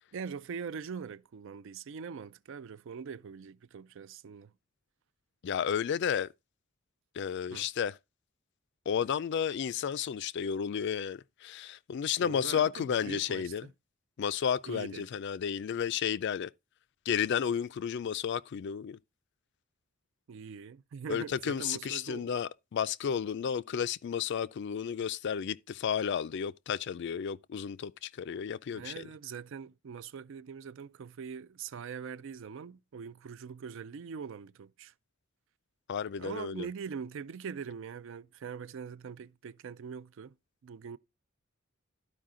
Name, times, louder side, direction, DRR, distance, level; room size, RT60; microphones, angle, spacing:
voice 1, 0.1-4.5 7.5-7.7 12.2-13.7 14.7-15.1 20.3-22.3 28.7-34.9 36.2-40.3 40.6-41.0, right 6 dB, 65° right, 0.4 m, -42 dB
voice 2, 5.4-6.3 7.1-8.0 8.9-13.7 14.2-16.5 17.1-19.0 21.1-29.0 35.9-36.7, left 7 dB, 55° left, 0.3 m, -32 dB
12.0 x 4.8 x 3.7 m
head